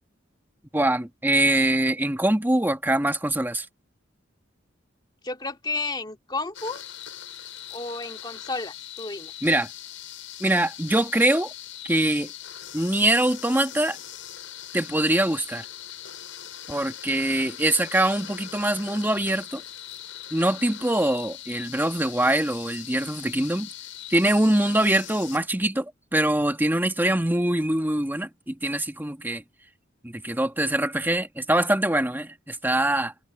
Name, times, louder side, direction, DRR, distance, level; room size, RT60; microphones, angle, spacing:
voice 1, 0.7-3.7 9.4-9.7 10.4-11.5 11.9-12.3 12.7-14.0 14.7-15.7 16.7-19.6 20.3-23.7 24.1-29.4 30.0-33.1, right 1 dB, 10° right, 1.7 m, -23 dB
voice 2, 5.2-6.8 7.7-9.3, left 3 dB, 25° left, 2.3 m, -32 dB
sound 1, 6.5-25.4, left 11 dB, 90° left, 6.8 m, -41 dB
head